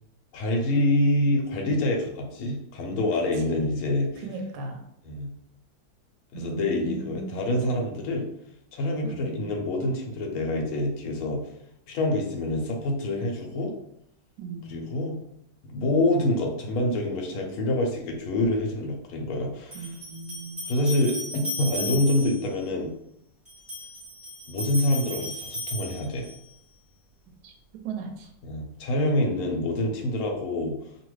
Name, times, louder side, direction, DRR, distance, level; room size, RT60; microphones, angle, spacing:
voice 1, 0.3-4.2 5.1-5.3 6.3-8.3 8.7-11.4 11.9-13.7 14.7-15.2 15.6-19.9 20.7-22.9 24.5-26.3 28.4-30.8, left 1 dB, 65° left, 1 dB, 1.0 m, -26 dB
voice 2, 3.5-3.8 4.2-4.8 6.3-7.5 9.0-9.5 14.4-14.9 19.7-20.8 27.4-27.5 27.8-28.3, right 3 dB, 75° right, 2 dB, 1.1 m, -37 dB
sound 1, 19.7-22.5 23.5-26.5, equal, 10° right, 1.1 m, -36 dB
2.9 x 2.4 x 3.1 m, 0.75 s
omnidirectional pair, 2.0 m